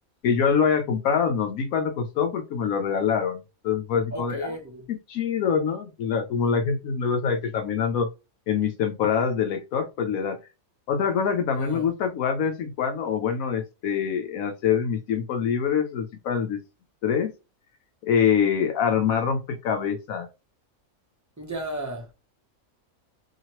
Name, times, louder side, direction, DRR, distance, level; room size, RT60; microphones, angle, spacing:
voice 1, 0.2-4.5 4.9-8.1 8.5-10.4 10.9-16.6 17.0-17.3 18.0-20.3, left 7 dB, 80° left, 1.0 m, -25 dB
voice 2, 4.1-4.9 11.6-11.9 21.4-22.1, equal, 20° right, 0.5 m, -34 dB
2.9 x 2.8 x 2.8 m
omnidirectional pair, 1.5 m